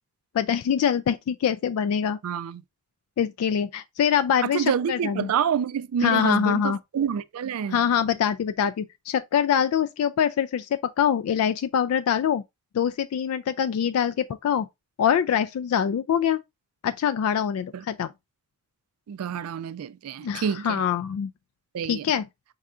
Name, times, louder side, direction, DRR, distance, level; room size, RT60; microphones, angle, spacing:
voice 1, 0.3-2.2 3.2-5.3 6.0-6.8 7.7-12.4 12.7-14.7 15.0-16.4 16.8-18.1 20.2-21.3 21.9-22.3, left 8 dB, 85° left, 0.3 m, -24 dB
voice 2, 2.2-2.6 4.4-7.8 17.7-17.8 19.1-20.8 21.7-22.0, right 7 dB, 90° right, 0.3 m, -28 dB
5.5 x 3.6 x 2.4 m
head